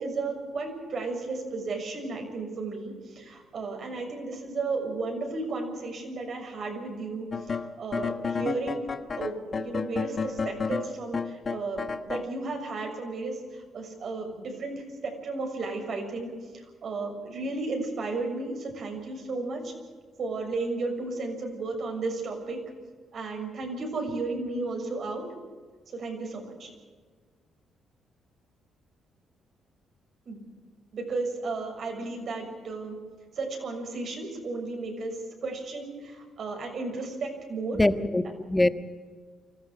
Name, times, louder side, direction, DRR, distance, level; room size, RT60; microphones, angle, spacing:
voice 1, 0.0-8.9 9.2-19.7 20.2-22.6 23.1-25.2 25.9-26.7 30.2-30.4 30.9-33.0 33.3-37.8, right 3 dB, 55° right, 2 dB, 6.7 m, -34 dB
sound 1, 7.3-12.3, left 5 dB, 40° left, 1.4 m, -31 dB
voice 2, 37.7-38.7, left 1 dB, 10° left, 10 dB, 1.4 m, -23 dB
25.0 x 14.5 x 7.9 m, 1.5 s
cardioid pair, 90°, 0 cm